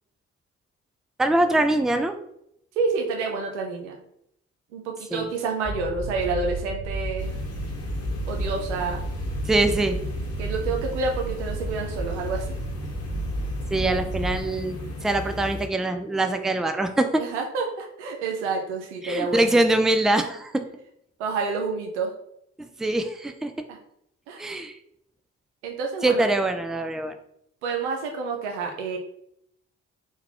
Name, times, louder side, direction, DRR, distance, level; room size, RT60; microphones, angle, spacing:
voice 1, 1.2-2.1 5.1-5.3 9.4-10.0 13.7-17.2 19.0-20.7 22.6-23.5 24.4-24.8 26.0-27.2, right 2 dB, ahead, 8 dB, 0.4 m, -23 dB
voice 2, 2.8-4.0 4.7-7.3 8.3-9.1 10.4-12.6 17.2-19.6 21.2-22.1 23.7-23.8 24.3-24.5 25.6-26.3 27.6-29.0, right 4 dB, 90° right, 2 dB, 0.6 m, -29 dB
sound 1, 5.6-14.5, right 2 dB, 90° left, 1.2 m, -32 dB
sound 2, 7.2-15.7, left 2 dB, 45° left, 0.9 m, -36 dB
3.8 x 2.3 x 2.9 m, 0.75 s
hypercardioid pair, 45°, 34 cm